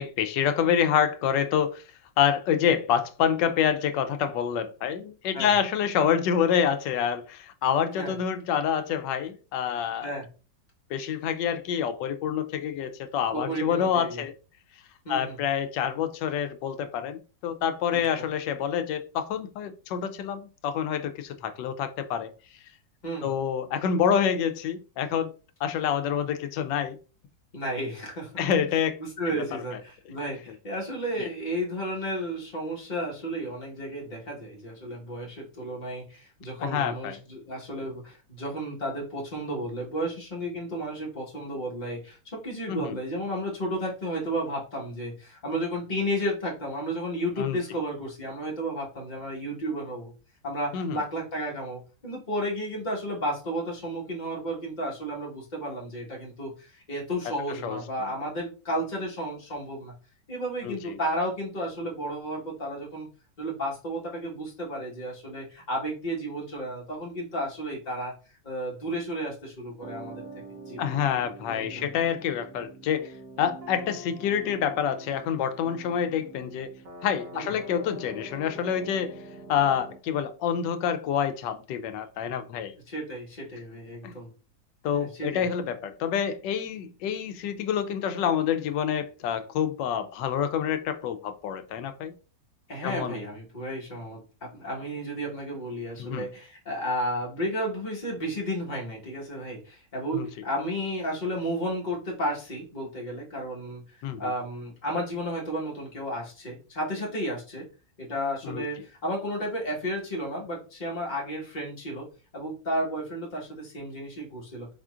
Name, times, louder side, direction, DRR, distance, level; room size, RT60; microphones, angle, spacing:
voice 1, 0.0-1.8 2.2-10.1 10.9-14.3 15.1-22.3 23.2-25.3 25.6-27.0 28.4-29.0 29.5-29.6 31.2-31.3 36.6-37.2 42.7-43.0 47.4-47.6 50.7-51.0 57.5-57.8 60.6-61.0 70.8-76.7 77.0-79.2 79.5-82.7 84.0-84.1 84.8-92.1 92.8-93.2 96.0-96.3 100.1-100.3 104.0-104.3 108.4-108.6, left 8 dB, 80° left, 1.2 m, -27 dB
voice 2, 13.3-14.2 15.0-15.4 17.9-18.2 23.0-23.3 27.5-28.3 29.0-50.1 50.4-59.9 60.3-63.1 63.4-68.1 68.4-70.2 70.7-71.0 71.5-71.9 77.3-77.5 82.9-84.3 84.9-85.5 92.7-107.6 108.0-112.1 112.3-114.7, equal, 25° left, 1.5 m, -33 dB
sound 1, 69.8-80.0, right 1 dB, 60° right, 1.3 m, -44 dB
4.3 x 3.7 x 2.4 m
omnidirectional pair, 1.9 m